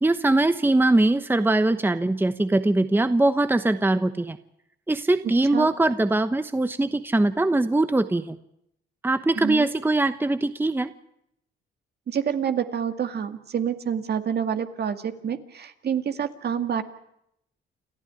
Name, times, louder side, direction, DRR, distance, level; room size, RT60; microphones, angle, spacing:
voice 1, 0.0-4.4 4.9-8.4 9.0-10.9, right 2 dB, 10° right, 10 dB, 1.1 m, -22 dB
voice 2, 9.4-9.7 12.1-16.8, right 8 dB, 55° right, 8 dB, 2.1 m, -27 dB
29.0 x 13.5 x 9.6 m, 0.78 s
cardioid pair, 90°, 20 cm